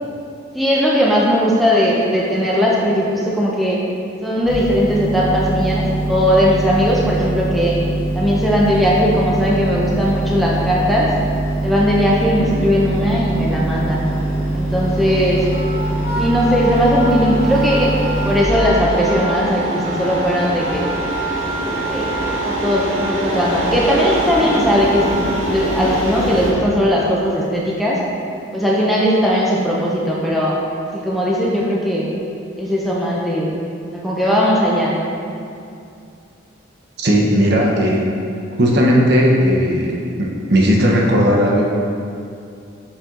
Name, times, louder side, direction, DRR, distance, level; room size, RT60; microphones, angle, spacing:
voice 1, 0.5-3.8 4.2-7.7 8.1-11.1 11.6-14.1 14.5-15.4 16.2-17.9 18.2-20.9 21.9-22.1 22.4-28.0 28.5-30.6 30.9-32.1 32.6-33.5 33.9-35.0, equal, ahead, -5 dB, 0.6 m, -18 dB
sound 1, 4.5-18.4, right 1 dB, 80° left, 1.5 m, -22 dB
sound 2, 7.7-26.5, equal, 85° right, 1.4 m, -28 dB
Wind instrument woodwind instrument, 15.5-25.5, right 2 dB, 50° left, 1.5 m, -27 dB
voice 2, 37.0-38.1 38.6-39.9 40.2-41.7, equal, 55° right, -2 dB, 0.9 m, -15 dB
6.9 x 4.4 x 3.8 m, 2.5 s
head